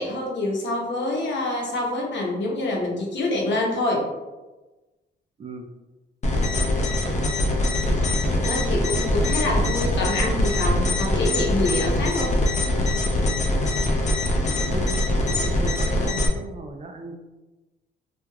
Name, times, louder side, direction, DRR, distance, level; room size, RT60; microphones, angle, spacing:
voice 1, 0.0-4.1 8.3-12.3, left 2 dB, 65° left, -2 dB, 0.8 m, -26 dB
sound 1, 6.2-16.3, left 1 dB, 35° left, 0.5 m, -23 dB
voice 2, 14.6-17.1, right 3 dB, 35° right, 4 dB, 0.4 m, -37 dB
3.1 x 2.3 x 2.2 m, 1.1 s
cardioid pair, 80°, 20 cm